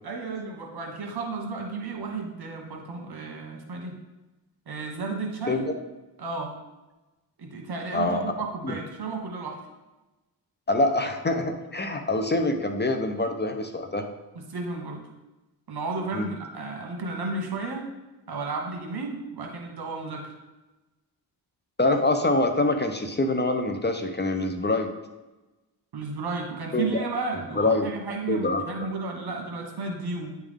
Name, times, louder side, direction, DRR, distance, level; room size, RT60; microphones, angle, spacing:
voice 1, 0.0-4.0 4.7-5.7 6.2-6.6 7.4-9.6 14.3-15.1 15.7-17.8 18.3-20.3 25.9-30.4, right 3 dB, 70° right, 1 dB, 1.4 m, -33 dB
voice 2, 10.7-14.0 16.1-16.3 21.8-24.9 26.7-27.1 27.6-27.9 28.3-28.9, left 2 dB, 25° left, 5 dB, 0.6 m, -25 dB
9.4 x 3.6 x 3.6 m, 1.1 s
cardioid pair, 80°, 40 cm